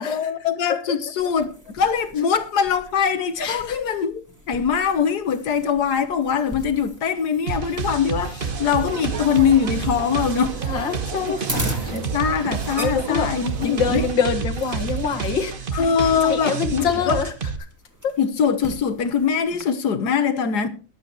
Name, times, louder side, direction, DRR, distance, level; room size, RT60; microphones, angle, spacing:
voice 1, 0.0-10.6 11.2-11.3 11.9-14.0 15.7-17.2 18.2-20.7, left 7 dB, 60° left, 1.7 m, -22 dB
sound 1, 1.2-19.6, equal, 10° right, 1.8 m, -39 dB
voice 2, 3.4-3.8 10.7-11.9 12.8-13.3 13.6-15.5 16.0-17.3, left 6 dB, 85° left, 2.4 m, -25 dB
sound 2, 7.5-17.6, right 5 dB, 35° right, 1.1 m, -29 dB
sound 3, 8.4-14.1, right 9 dB, 60° right, 1.0 m, -36 dB
21.5 x 8.4 x 3.1 m
omnidirectional pair, 2.0 m